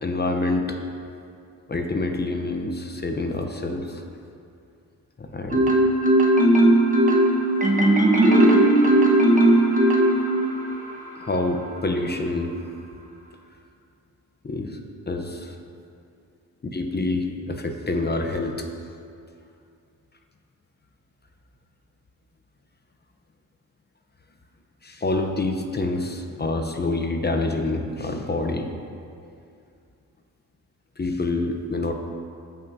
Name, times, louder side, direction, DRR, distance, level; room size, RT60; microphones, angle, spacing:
voice 1, 0.0-0.8 1.7-4.0 5.2-5.8 11.2-12.6 14.4-14.8 15.1-15.6 16.7-18.7 24.8-28.7 31.0-31.9, left 2 dB, 30° left, 4 dB, 0.8 m, -27 dB
Marimba xylophone, 5.5-10.7, right 1 dB, 20° right, 1.3 m, -17 dB
14.5 x 5.5 x 2.8 m, 2.5 s
cardioid pair, 60°, 35 cm